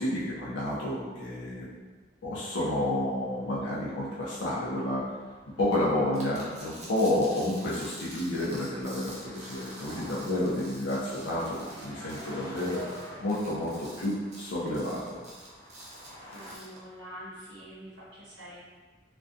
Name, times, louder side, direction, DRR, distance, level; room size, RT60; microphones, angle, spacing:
voice 1, 0.0-1.7 2.2-5.1 5.6-12.8 13.2-15.2, left 1 dB, 85° left, -7 dB, 0.5 m, -30 dB
sound 1, 3.2-16.6, equal, 15° left, 0.4 m, -49 dB
sound 2, 6.1-16.8, right 2 dB, 35° right, 0.5 m, -48 dB
voice 2, 16.3-18.6, equal, 85° right, -9 dB, 0.8 m, -45 dB
2.4 x 2.2 x 2.5 m, 1.3 s
head